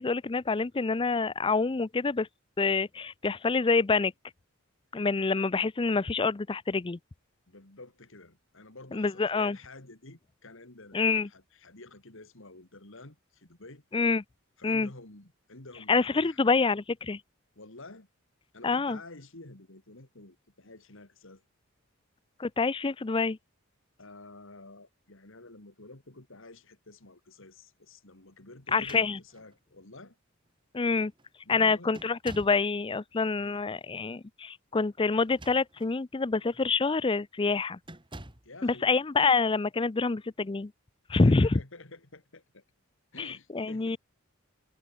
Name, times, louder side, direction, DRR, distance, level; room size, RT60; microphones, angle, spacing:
voice 1, 0.0-2.3 2.6-4.1 4.9-7.0 8.9-9.6 10.9-11.3 13.9-14.2 14.6-14.9 15.9-17.2 18.6-19.0 22.4-23.4 28.7-29.2 30.7-31.1 31.5-37.8 38.6-40.7 41.1-41.6 43.2-44.0, left 4 dB, 25° left, 0.5 m, -26 dB
voice 2, 7.5-13.8 14.6-16.4 17.6-18.1 18.5-21.4 24.0-30.2 31.4-31.9 33.3-33.6 38.4-38.9 41.1-42.6 43.1-44.0, left 2 dB, 65° left, 2.9 m, -50 dB
sound 1, 28.7-29.6 30.5-30.6 30.9-31.3 31.9-32.7 35.1-36.0 36.5-36.7 37.8-38.6, right 1 dB, 25° right, 2.6 m, -48 dB
head